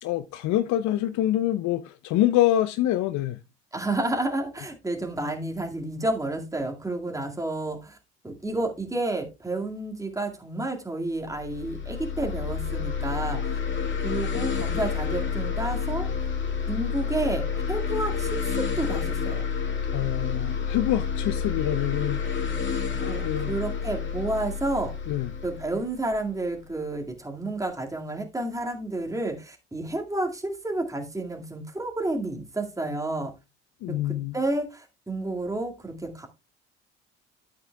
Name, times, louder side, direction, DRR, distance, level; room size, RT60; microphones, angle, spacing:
voice 1, 0.0-3.4 19.9-22.2 23.2-23.5 25.1-25.3 33.8-34.4, left 13 dB, 55° left, 0.7 m, -25 dB
voice 2, 3.7-8.0 8.2-13.6 14.0-16.3 16.7-18.5 18.8-19.4 23.0-24.9 25.4-33.3 33.9-36.3, right 2 dB, 10° right, 2.1 m, -30 dB
sound 1, 11.3-26.7, left 6 dB, 35° left, 2.5 m, -29 dB
12.5 x 8.3 x 2.3 m
hypercardioid pair, 60°, 35 cm